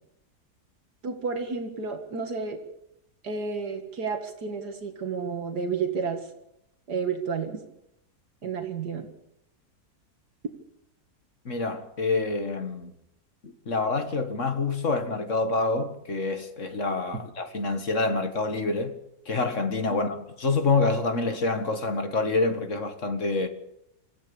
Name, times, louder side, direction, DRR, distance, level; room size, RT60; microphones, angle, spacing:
voice 1, 1.0-2.6 3.2-6.3 6.9-7.6 8.4-9.1, right 5 dB, 80° right, 2.4 m, -31 dB
voice 2, 11.5-12.9 13.4-19.0 19.3-23.5, left 3 dB, 50° left, 2.0 m, -27 dB
26.5 x 15.5 x 7.0 m
omnidirectional pair, 1.7 m